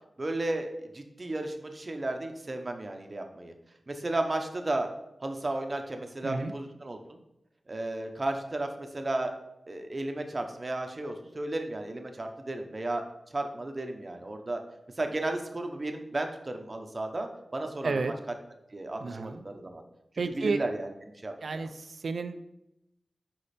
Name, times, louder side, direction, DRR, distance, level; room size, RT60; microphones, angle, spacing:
voice 1, 0.2-3.5 3.9-4.9 5.2-7.2 7.7-9.3 9.7-13.0 13.3-14.6 15.0-18.3 18.7-19.8 20.3-21.7, right 2 dB, 35° right, 5 dB, 0.8 m, -34 dB
voice 2, 6.2-6.5 17.8-18.1 19.0-19.4 20.2-20.6 21.4-21.7 22.0-22.4, right 4 dB, 75° right, 10 dB, 0.4 m, -31 dB
5.5 x 5.0 x 4.2 m, 0.85 s
wide cardioid pair, 115°, 0 cm